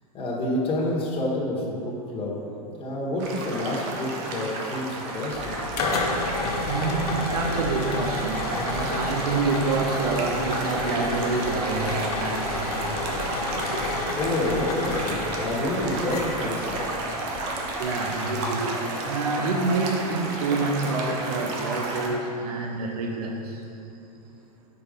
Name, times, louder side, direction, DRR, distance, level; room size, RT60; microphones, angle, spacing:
voice 1, 0.1-2.5 2.8-5.5 14.2-16.7, left 1 dB, 30° left, -4 dB, 1.5 m, -28 dB
sound 1, 3.2-22.1, right 2 dB, 50° right, 1.0 m, -32 dB
sound 2, 5.3-17.8, left 3 dB, 70° left, 0.9 m, -31 dB
voice 2, 6.7-12.8 17.8-23.6, right 3 dB, 70° right, 2 dB, 0.7 m, -27 dB
5.3 x 4.5 x 5.2 m, 2.8 s
hypercardioid pair, 105°, 20 cm